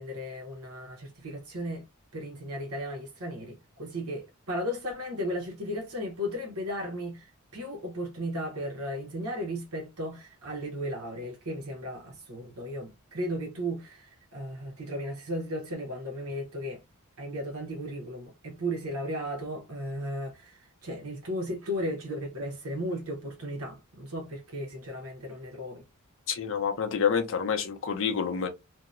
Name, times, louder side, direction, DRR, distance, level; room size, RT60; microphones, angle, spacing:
voice 1, 0.0-1.8 2.1-16.8 17.2-25.8, equal, 75° right, 0.9 m, -35 dB
voice 2, 26.3-28.5, left 7 dB, 60° left, 0.5 m, -28 dB
2.7 x 2.0 x 2.4 m
head